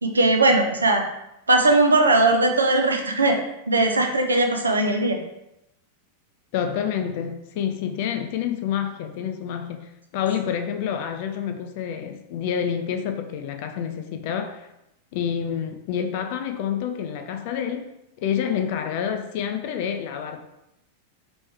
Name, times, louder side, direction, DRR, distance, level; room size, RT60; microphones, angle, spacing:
voice 1, 0.0-1.0 1.5-3.4 3.7-5.2, right 2 dB, 75° right, 3 dB, 0.5 m, -19 dB
voice 2, 6.5-14.7 15.1-17.9 18.2-20.5, left 8 dB, 50° left, 6 dB, 0.4 m, -28 dB
3.1 x 3.0 x 3.2 m, 0.86 s
figure-of-eight pair, 90°, 0 cm